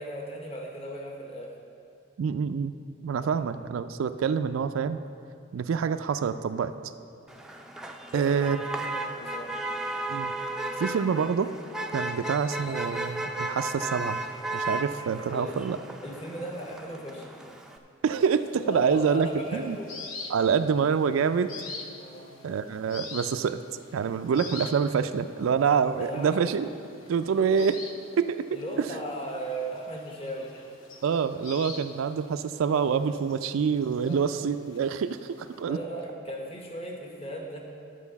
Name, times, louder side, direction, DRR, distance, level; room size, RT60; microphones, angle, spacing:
voice 1, 0.0-1.5 3.2-3.6 7.3-7.4 8.1-9.6 15.3-15.5 16.0-17.4 18.6-19.9 22.0-22.3 25.9-26.4 28.5-30.5 34.1-34.4 35.7-37.6, right 1 dB, 30° left, 0 dB, 1.0 m, -37 dB
voice 2, 2.2-2.7 3.0-5.0 5.5-6.7 8.1-8.6 10.1-10.3 10.8-11.5 11.9-14.2 14.5-15.8 18.0-19.8 20.3-21.5 22.4-23.6 23.9-26.7 27.1-27.8 28.2-28.4 28.8-28.9 31.0-35.8, right 6 dB, 85° right, 10 dB, 0.4 m, -26 dB
Motor vehicle (road), 7.3-17.8, right 1 dB, 5° right, 0.4 m, -35 dB
sound 1, 18.1-35.6, left 3 dB, 80° left, 0.9 m, -46 dB
12.0 x 4.8 x 7.0 m, 2.5 s
head